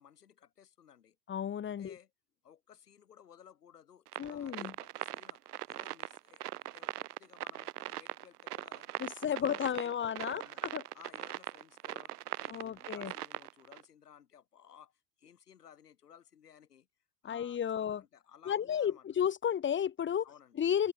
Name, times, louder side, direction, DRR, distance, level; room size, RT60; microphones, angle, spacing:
voice 1, 0.0-1.2 1.7-2.1 2.4-8.9 9.2-10.6 10.9-16.9 17.2-19.1 20.2-20.6, left 9 dB, 85° left, 7.8 m, -58 dB
voice 2, 1.3-1.9 4.2-4.7 9.0-10.8 12.5-13.1 17.2-18.0 18.5-20.2 20.6-20.9, left 9 dB, 25° left, 1.7 m, -33 dB
sound 1, 4.1-13.8, right 14 dB, 80° right, 1.0 m, -41 dB
open air
hypercardioid pair, 100°, 45 cm